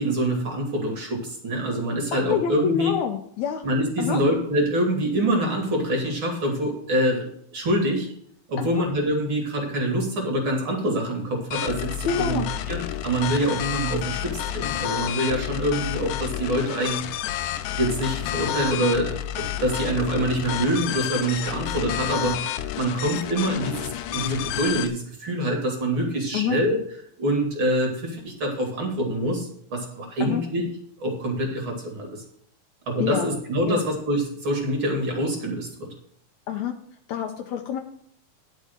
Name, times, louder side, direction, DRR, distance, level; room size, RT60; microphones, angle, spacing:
voice 1, 0.0-2.9 3.6-7.3 7.5-8.1 8.5-17.0 17.8-26.8 27.2-30.6 31.0-32.1 32.9-35.9, right 1 dB, 40° right, 0 dB, 2.8 m, -25 dB
voice 2, 2.1-3.6 4.0-4.2 8.6-8.8 12.1-12.5 26.3-26.6 30.2-30.4 33.0-33.3 33.6-33.8 36.5-36.8 37.1-37.8, left 8 dB, 75° left, 5 dB, 1.9 m, -27 dB
sound 1, 11.5-24.9, left 12 dB, 90° left, 2.3 m, -30 dB
11.0 x 5.3 x 6.5 m, 0.65 s
omnidirectional pair, 3.7 m